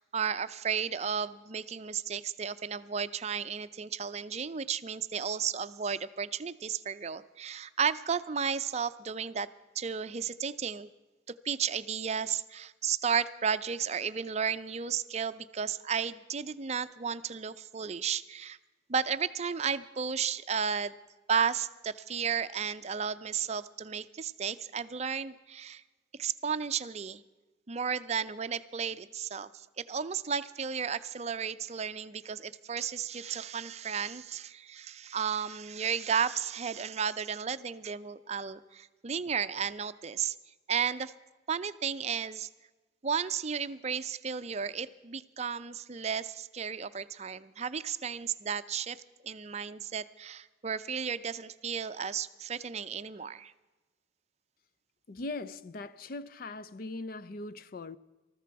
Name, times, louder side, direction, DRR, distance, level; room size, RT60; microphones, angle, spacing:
voice 1, 0.0-9.5 9.8-10.9 11.3-18.6 18.9-20.9 21.3-25.8 26.2-27.2 27.7-40.4 40.7-41.1 41.5-42.5 43.0-49.0 49.2-53.5, right 7 dB, 35° right, 0.5 m, -33 dB
voice 2, 55.1-58.0, left 2 dB, 50° left, 0.5 m, -40 dB
19.5 x 14.0 x 4.7 m
head